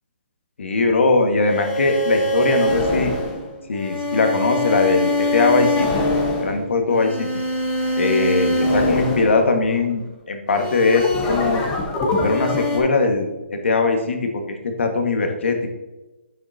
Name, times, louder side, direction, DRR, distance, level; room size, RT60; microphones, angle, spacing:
voice 1, 0.6-3.1 3.7-6.0 6.4-7.3 8.0-11.6 12.2-15.7, left 3 dB, 70° left, 4 dB, 1.7 m, -20 dB
sound 1, 1.4-9.9 10.5-12.8, left 1 dB, 15° left, 1.2 m, -23 dB
9.4 x 7.9 x 2.8 m, 1.1 s
hypercardioid pair, 160°, 7 cm